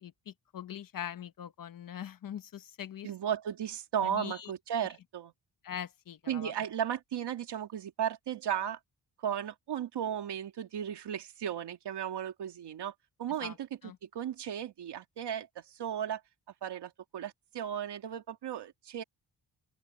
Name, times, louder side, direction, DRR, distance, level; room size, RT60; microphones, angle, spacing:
voice 1, 0.0-3.1 4.0-4.5 5.6-6.5 13.4-13.6 13.8-14.0, left 9 dB, 55° left, 1.0 m, -42 dB
voice 2, 3.0-5.3 6.3-8.8 9.2-12.9 13.2-13.5 13.8-16.2 16.6-19.0, right 9 dB, 80° right, 2.7 m, -35 dB
open air
wide cardioid pair, 160°, 40 cm